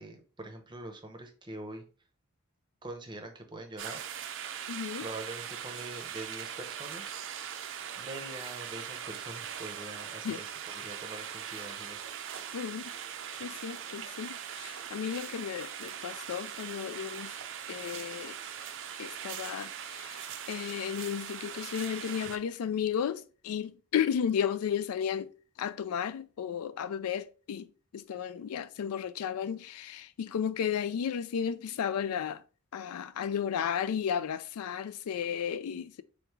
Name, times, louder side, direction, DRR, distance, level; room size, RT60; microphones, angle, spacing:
voice 1, 0.0-1.8 2.8-4.0 5.0-7.1 8.0-12.4, right 2 dB, 20° right, 0.7 m, -44 dB
sound 1, 3.8-22.4, right 9 dB, 60° right, 0.5 m, -41 dB
voice 2, 4.7-5.1 10.2-10.4 12.5-12.9 13.4-17.4 17.7-18.4 19.0-25.3 25.6-32.4 32.7-36.0, left 8 dB, 80° left, 0.3 m, -34 dB
3.5 x 3.1 x 3.5 m
head